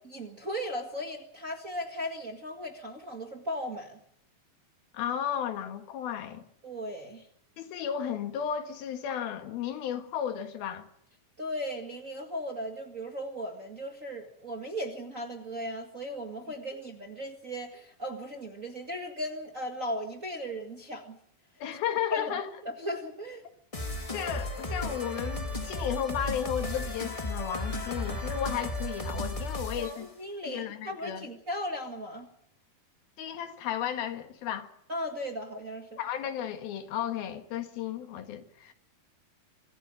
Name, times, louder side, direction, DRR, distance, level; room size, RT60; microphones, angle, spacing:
voice 1, 0.1-4.0 6.6-7.2 11.4-21.2 22.1-22.4 22.6-23.4 29.8-32.3 34.9-36.0, equal, 35° right, 1.5 m, -37 dB
voice 2, 4.9-6.5 7.6-10.9 21.6-22.5 24.1-30.1 30.4-31.3 33.2-34.7 36.0-38.7, left 9 dB, 85° left, 3.5 m, -34 dB
sound 1, 23.7-30.0, left 2 dB, 30° left, 0.6 m, -34 dB
25.5 x 14.0 x 8.6 m
omnidirectional pair, 4.2 m